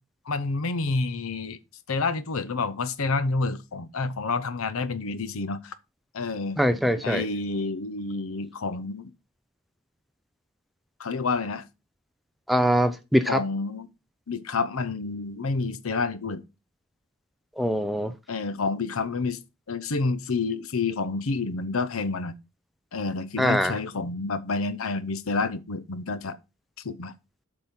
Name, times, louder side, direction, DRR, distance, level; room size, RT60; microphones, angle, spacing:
voice 1, 0.3-1.6 1.9-5.7 6.1-6.6 7.0-9.1 11.0-11.6 13.3-13.9 14.3-16.4 18.3-19.4 19.7-22.4 22.9-26.4 26.8-27.1, left 3 dB, 75° left, 0.7 m, -29 dB
voice 2, 6.6-7.2 12.5-13.4 17.6-18.1 23.4-23.8, equal, ahead, 0.4 m, -23 dB
8.0 x 5.4 x 4.3 m
head